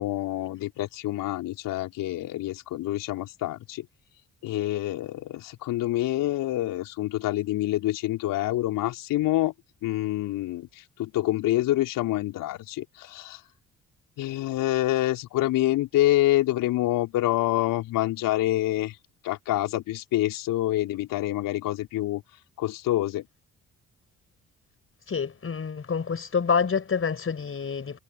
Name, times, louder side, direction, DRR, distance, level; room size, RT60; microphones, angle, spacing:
voice 1, 0.0-3.9 4.4-9.5 9.8-13.4 14.2-19.0 19.2-22.2 22.6-23.3, left 15 dB, 65° left, 4.7 m, -27 dB
voice 2, 25.1-28.0, left 6 dB, 40° left, 5.4 m, -27 dB
figure-of-eight pair, 45°, 35 cm